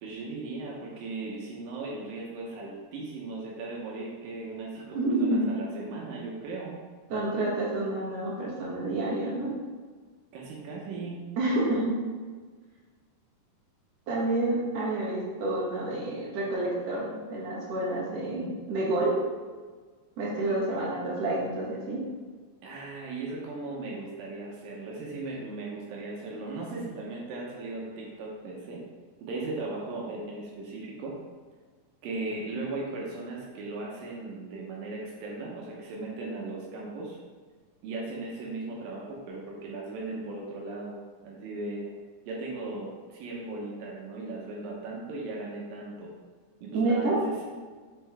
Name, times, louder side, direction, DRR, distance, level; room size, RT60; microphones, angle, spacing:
voice 1, 0.0-6.8 10.3-11.2 22.6-28.8 29.2-31.1 32.0-37.2 37.8-41.0 41.2-41.8 42.3-46.1 46.6-47.4, right 2 dB, 80° right, -3 dB, 2.6 m, -37 dB
voice 2, 4.9-5.4 7.1-9.5 11.4-12.0 14.1-19.1 20.2-22.0 46.7-47.2, right 2 dB, 55° right, -6 dB, 2.4 m, -28 dB
6.6 x 4.4 x 3.4 m, 1.4 s
omnidirectional pair, 4.0 m